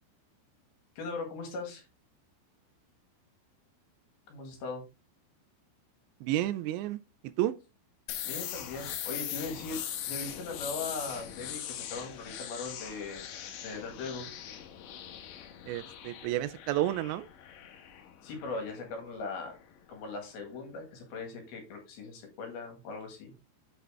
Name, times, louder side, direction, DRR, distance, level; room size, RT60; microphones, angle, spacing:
voice 1, 1.0-1.8 4.3-4.8 8.2-13.2 13.6-14.3 18.2-19.6 19.9-23.3, left 3 dB, 60° left, 3.4 m, -39 dB
voice 2, 6.2-7.0 7.4-7.5 15.7-17.3, right 14 dB, 85° right, 2.7 m, -30 dB
sound 1, 8.1-19.7, left 10 dB, 80° left, 3.3 m, -41 dB
8.1 x 6.2 x 3.4 m
omnidirectional pair, 5.3 m